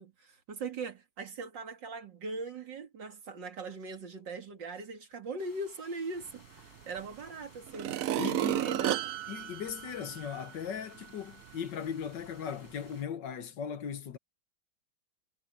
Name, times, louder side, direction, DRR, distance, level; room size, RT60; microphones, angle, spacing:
voice 1, 0.0-9.0, right 3 dB, 85° right, 2.9 m, -40 dB
sound 1, 5.4-13.0, left 3 dB, 60° left, 5.8 m, -59 dB
sound 2, 7.0-7.1 7.7-10.5 11.0-11.1, right 12 dB, 65° right, 0.9 m, -32 dB
voice 2, 8.2-8.7 9.3-14.2, left 8 dB, 75° left, 1.8 m, -38 dB
omnidirectional pair, 1.9 m